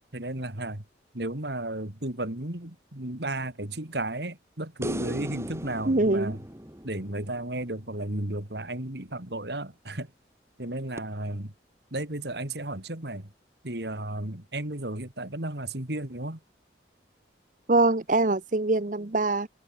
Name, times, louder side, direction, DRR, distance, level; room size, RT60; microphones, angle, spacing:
voice 1, 0.1-0.8 1.1-6.4 6.8-10.1 10.6-11.5 11.9-13.3 13.6-16.4, right 1 dB, 60° right, 3.2 m, -33 dB
sound 1, 4.8-8.1 11.0-11.1, equal, 15° right, 2.4 m, -37 dB
voice 2, 5.9-6.4 17.7-19.5, right 2 dB, 45° right, 1.0 m, -23 dB
head